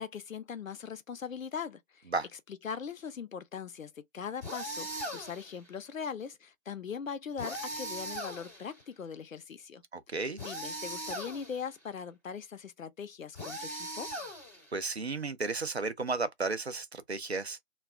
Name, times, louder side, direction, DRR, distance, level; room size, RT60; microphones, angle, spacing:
voice 1, 0.0-2.1 2.6-9.8 10.4-14.1, left 7 dB, 75° left, 0.6 m, -40 dB
sound 1, 4.4-5.6 7.4-8.8 10.4-11.7 13.3-14.8, right 1 dB, 10° left, 1.3 m, -39 dB
voice 2, 9.9-10.4 14.7-17.6, right 3 dB, 55° right, 0.5 m, -33 dB
2.3 x 2.2 x 3.5 m
figure-of-eight pair, 175°, 40 cm